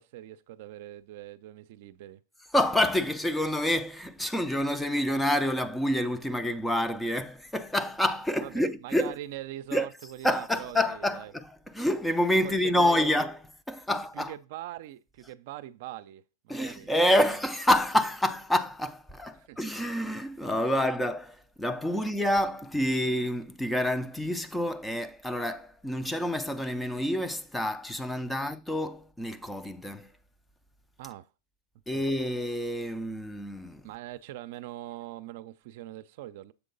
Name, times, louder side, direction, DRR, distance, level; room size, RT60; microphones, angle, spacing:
voice 1, 0.0-2.2 8.4-11.3 12.4-13.1 13.9-16.9 17.2-17.4 19.3-19.6 22.0-22.1 28.3-28.4 31.0-31.3 31.9-32.0 33.8-36.5, right 14 dB, 60° right, 0.5 m, -42 dB
voice 2, 2.5-9.2 9.7-14.4 16.5-30.1 31.9-33.9, left 1 dB, 5° left, 0.5 m, -28 dB
7.1 x 3.8 x 5.3 m
hypercardioid pair, 120°, 0 cm